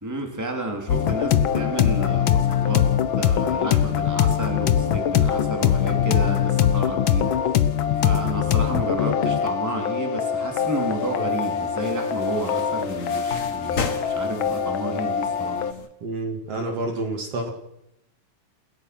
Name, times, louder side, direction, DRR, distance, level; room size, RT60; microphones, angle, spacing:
voice 1, 0.0-2.9 3.1-7.7 8.0-15.6, right 2 dB, 5° right, 2 dB, 3.2 m, -31 dB
sound 1, 0.9-15.7, left 9 dB, 65° left, 1.2 m, -22 dB
sound 2, 10.6-15.9, left 5 dB, 35° left, 1.4 m, -36 dB
voice 2, 16.0-17.5, right 2 dB, 55° right, 2 dB, 3.5 m, -28 dB
29.0 x 16.0 x 6.2 m, 0.85 s
omnidirectional pair, 3.4 m